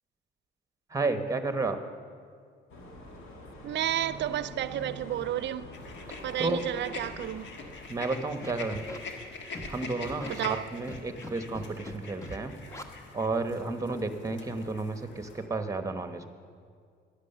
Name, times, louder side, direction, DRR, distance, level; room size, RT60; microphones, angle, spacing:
voice 1, 0.9-1.8 6.4-6.6 7.9-8.8 9.7-12.5 13.1-16.3, right 3 dB, 15° right, 1.1 m, -32 dB
sound 1, 2.7-7.8, equal, 85° left, 2.0 m, -45 dB
voice 2, 3.6-5.7 6.2-7.6 10.3-10.7, right 12 dB, 65° right, 0.5 m, -32 dB
sound 2, 5.7-15.5, left 4 dB, 70° left, 1.5 m, -44 dB
Scratching (performance technique), 8.4-9.0 9.5-9.7 10.0-10.3 10.9-11.3 11.5-12.0 12.2-12.4 12.7-12.8, left 1 dB, 15° left, 1.1 m, -41 dB
11.0 x 10.5 x 6.7 m
cardioid pair, 90°, 20 cm